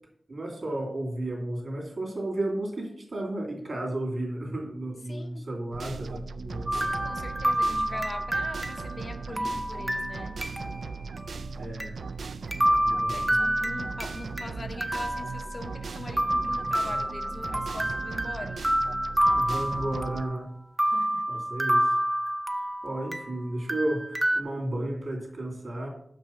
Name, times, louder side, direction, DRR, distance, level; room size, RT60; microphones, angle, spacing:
voice 1, 0.3-6.9 11.6-12.0 12.9-13.4 19.4-20.5 21.3-21.9 22.8-25.9, right 1 dB, 55° right, 2.6 m, -33 dB
voice 2, 5.0-5.5 6.8-10.5 13.1-18.8 20.8-21.3, left 2 dB, 35° left, 0.6 m, -42 dB
sound 1, 5.7-20.2, right 4 dB, 85° right, 0.3 m, -38 dB
sound 2, 6.7-10.9 11.2-11.3 11.8-11.9 12.5-14.5 14.8-15.8 16.2-20.4 20.8-23.3 23.7-24.4, right 1 dB, 10° right, 0.6 m, -28 dB
6.5 x 6.0 x 5.7 m
wide cardioid pair, 120°, 0 cm